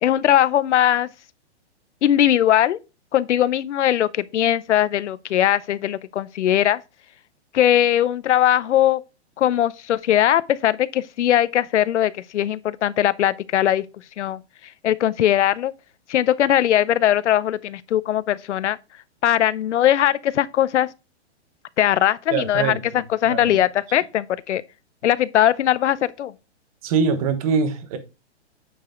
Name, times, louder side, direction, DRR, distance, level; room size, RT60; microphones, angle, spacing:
voice 1, 0.0-1.1 2.0-2.8 3.1-6.8 7.5-9.0 9.4-13.8 14.2-14.4 14.8-15.7 16.1-18.8 19.2-20.9 21.8-22.7 23.2-24.6 25.0-26.3, left 11 dB, 85° left, 0.7 m, -20 dB
voice 2, 22.3-23.6 26.8-28.0, right 5 dB, 30° right, 1.1 m, -24 dB
9.0 x 4.9 x 3.7 m
hypercardioid pair, 165°, 34 cm